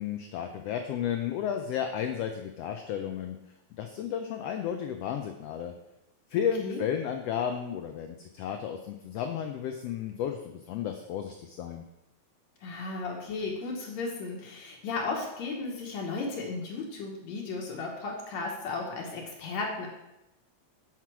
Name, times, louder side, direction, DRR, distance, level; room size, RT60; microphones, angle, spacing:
voice 1, 0.0-3.4 3.8-5.7 6.3-11.8, left 8 dB, 85° left, 5 dB, 1.4 m, -33 dB
voice 2, 12.6-19.9, left 3 dB, 70° left, -1 dB, 2.3 m, -35 dB
7.6 x 5.8 x 4.7 m, 0.90 s
omnidirectional pair, 3.4 m